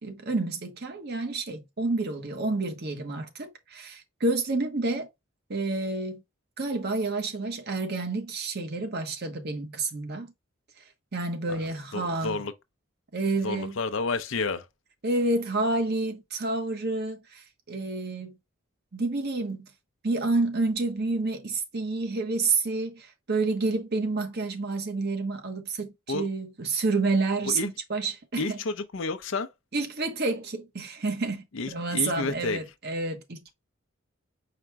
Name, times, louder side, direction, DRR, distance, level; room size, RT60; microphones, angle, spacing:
voice 1, 0.0-5.1 5.5-6.2 6.6-10.3 11.1-12.4 13.1-13.8 15.0-18.4 18.9-19.7 20.0-28.6 29.7-33.5, right 3 dB, 50° right, 1.0 m, -29 dB
voice 2, 11.9-12.5 13.4-14.7 26.1-26.3 27.5-27.7 28.4-29.5 31.5-32.6, left 3 dB, 65° left, 0.6 m, -30 dB
5.0 x 2.2 x 4.5 m
head